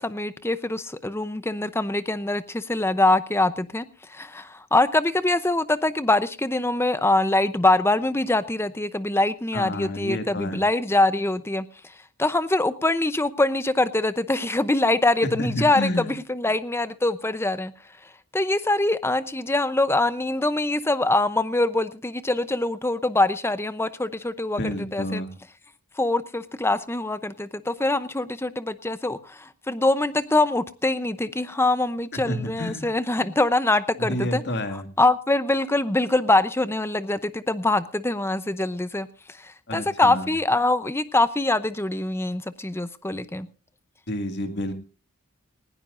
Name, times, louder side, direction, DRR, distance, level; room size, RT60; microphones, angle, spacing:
voice 1, 0.0-11.7 12.2-17.7 18.3-25.2 26.0-34.4 35.0-39.1 39.4-43.5, left 2 dB, 10° left, 0.7 m, -24 dB
voice 2, 9.5-10.6 15.2-16.1 24.6-25.3 32.1-32.9 34.0-34.9 39.7-40.3 44.1-44.7, left 1 dB, 50° left, 2.0 m, -29 dB
19.5 x 16.0 x 2.6 m
head